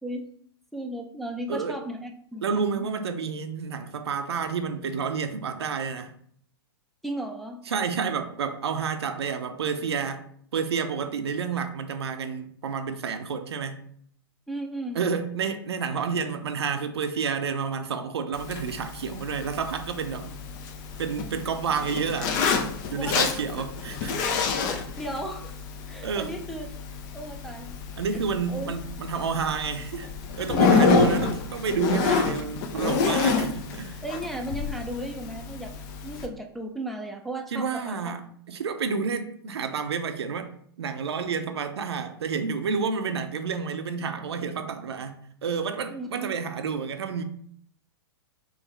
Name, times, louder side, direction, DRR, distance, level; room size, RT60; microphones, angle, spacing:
voice 1, 0.7-2.9 7.0-7.6 14.5-15.0 22.9-23.4 24.2-25.6 25.9-26.7 27.1-27.7 28.5-28.7 30.5-31.1 34.0-35.7 36.0-38.0 45.9-46.4, right 1 dB, ahead, 0.4 m, -35 dB
voice 2, 2.4-6.1 7.7-10.2 10.5-13.8 14.9-20.3 21.0-22.4 22.9-24.2 26.0-26.3 28.0-34.0 37.5-38.2 38.5-40.5 40.8-47.2, right 6 dB, 80° right, 0.5 m, -30 dB
Zipper (clothing), 18.3-36.3, left 5 dB, 45° left, 0.6 m, -28 dB
4.7 x 2.6 x 3.1 m
hypercardioid pair, 110°, 13 cm